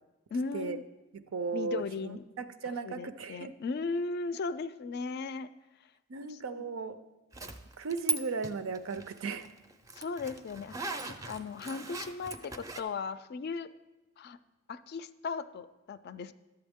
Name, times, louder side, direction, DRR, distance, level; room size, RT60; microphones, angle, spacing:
voice 1, 0.3-0.8 1.5-2.2 2.8-5.5 6.3-6.6 9.9-10.7 11.3-13.7 14.2-14.4 14.7-16.3, left 4 dB, 50° left, 13 dB, 0.3 m, -37 dB
voice 2, 1.1-3.5 6.1-7.0 7.8-9.5, right 4 dB, 85° right, 11 dB, 0.5 m, -36 dB
Zipper (clothing), 7.3-8.2 8.4-12.8, right 2 dB, 15° right, 0.4 m, -38 dB
11.0 x 7.8 x 3.6 m, 1.1 s
head